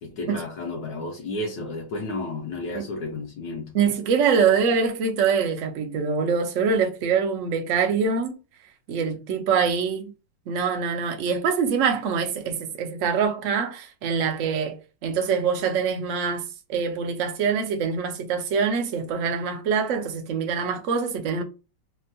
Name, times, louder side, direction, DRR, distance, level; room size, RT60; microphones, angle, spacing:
voice 1, 0.0-3.7, left 2 dB, 75° left, 1.2 m, -32 dB
voice 2, 3.7-8.4 8.9-10.1 10.5-21.4, right 6 dB, 75° right, 0.7 m, -24 dB
3.4 x 2.2 x 2.6 m
omnidirectional pair, 2.1 m